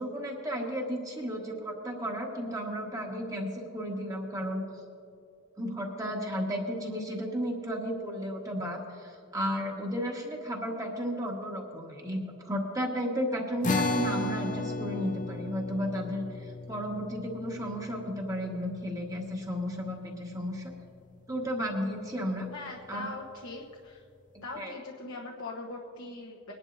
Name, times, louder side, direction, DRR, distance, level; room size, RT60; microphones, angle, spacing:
voice 1, 0.0-4.6 5.6-20.7 21.3-22.5 22.9-23.1 24.5-24.7, equal, 15° right, 0 dB, 1.4 m, -33 dB
sound 1, 13.6-20.3, left 2 dB, 40° left, 0.6 m, -34 dB
voice 2, 22.5-24.0 24.4-26.5, left 3 dB, 80° left, -2 dB, 1.1 m, -41 dB
21.5 x 11.0 x 2.7 m, 2.4 s
head